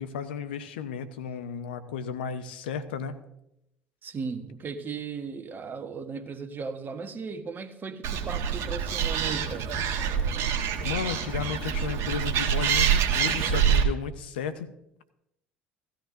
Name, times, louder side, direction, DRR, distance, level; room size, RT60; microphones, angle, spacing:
voice 1, 0.0-3.1 10.8-14.7, left 7 dB, 80° left, 11 dB, 0.8 m, -34 dB
voice 2, 4.0-9.7, right 5 dB, 40° right, 8 dB, 1.3 m, -36 dB
Animal, 8.0-13.8, right 7 dB, 60° right, 1.4 m, -26 dB
17.0 x 13.0 x 2.6 m, 0.83 s
hypercardioid pair, 65°, 5 cm